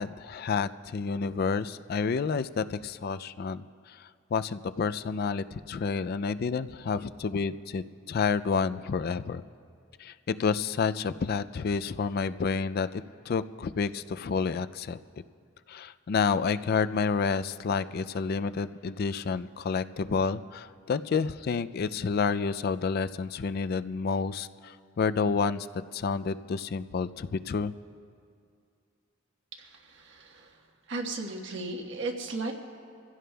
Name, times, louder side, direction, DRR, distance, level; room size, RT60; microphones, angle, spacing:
voice 1, 0.0-9.4 10.0-15.0 15.7-25.7 25.9-27.7, left 5 dB, 50° left, 13 dB, 0.3 m, -29 dB
voice 2, 29.6-30.6 30.9-32.5, right 2 dB, 60° right, 2 dB, 1.3 m, -36 dB
27.0 x 16.0 x 2.3 m, 2.3 s
head